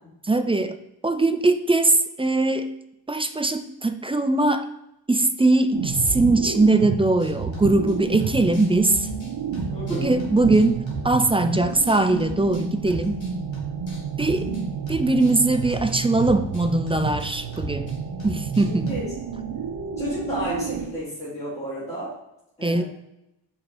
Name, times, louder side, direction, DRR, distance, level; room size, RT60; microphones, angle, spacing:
voice 1, 0.2-0.8 1.0-2.7 3.1-4.7 5.1-9.1 9.9-10.8 11.0-13.2 14.2-14.5 14.9-17.9 18.2-18.9 22.6-22.8, right 2 dB, 15° right, 9 dB, 0.3 m, -21 dB
sound 1, 5.7-20.9, right 6 dB, 85° right, 0.9 m, -30 dB
sound 2, 7.2-7.9 8.2-11.3 11.5-14.6 14.9-19.2, equal, 75° left, 2.4 m, -38 dB
voice 2, 9.7-10.1 18.6-19.1 20.0-22.1 22.6-22.8, equal, 15° left, -11 dB, 2.7 m, -31 dB
5.6 x 5.5 x 4.1 m, 0.84 s
wide cardioid pair, 110°, 46 cm